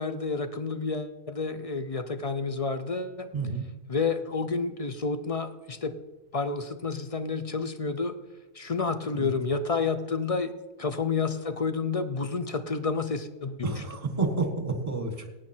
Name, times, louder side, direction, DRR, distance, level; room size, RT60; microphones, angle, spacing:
voice 1, 0.0-3.3 3.9-5.9 6.3-8.2 8.6-10.5 10.8-13.7, left 4 dB, 40° left, 10 dB, 0.5 m, -30 dB
voice 2, 3.3-3.6 9.1-9.3 13.6-15.3, right 3 dB, 25° right, 5 dB, 1.6 m, -30 dB
17.0 x 9.1 x 4.4 m, 1.1 s
omnidirectional pair, 1.4 m